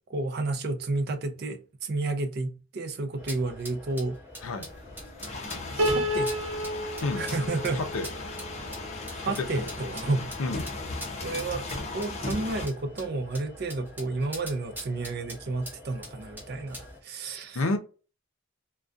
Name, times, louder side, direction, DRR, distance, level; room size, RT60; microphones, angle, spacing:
voice 1, 0.1-4.2 5.7-6.5 7.2-7.8 9.1-10.3 11.2-11.6 11.9-17.6, right 3 dB, 50° right, 0.4 m, -31 dB
sound 1, 3.2-17.0, equal, 10° right, 0.6 m, -44 dB
sound 2, 4.5-12.7, left 3 dB, 30° left, 0.5 m, -37 dB
Piano, 5.8-9.0, equal, 85° right, 0.7 m, -31 dB
voice 2, 7.7-8.3 9.2-9.7 10.4-10.7 17.5-17.8, left 2 dB, 75° left, 0.5 m, -30 dB
2.3 x 2.2 x 2.5 m
head